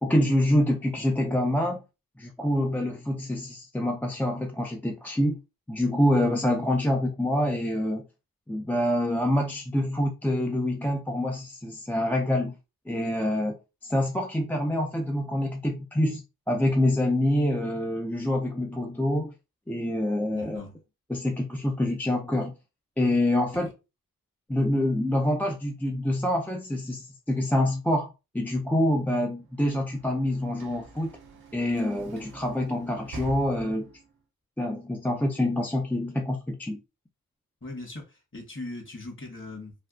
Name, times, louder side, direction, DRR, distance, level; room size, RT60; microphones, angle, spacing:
voice 1, 0.0-1.8 2.2-5.4 5.7-8.0 8.5-12.6 12.9-13.6 13.8-16.2 16.5-19.3 19.7-20.6 21.1-22.5 23.0-23.7 24.5-31.1 31.5-33.9 34.6-36.8, left 1 dB, 5° left, 0.5 m, -26 dB
voice 2, 20.3-20.8 37.6-39.7, left 2 dB, 35° left, 1.5 m, -39 dB
Sliding door / Slam, 29.4-34.2, right 2 dB, 85° right, 0.7 m, -46 dB
3.3 x 2.3 x 2.4 m
cardioid pair, 55°, 36 cm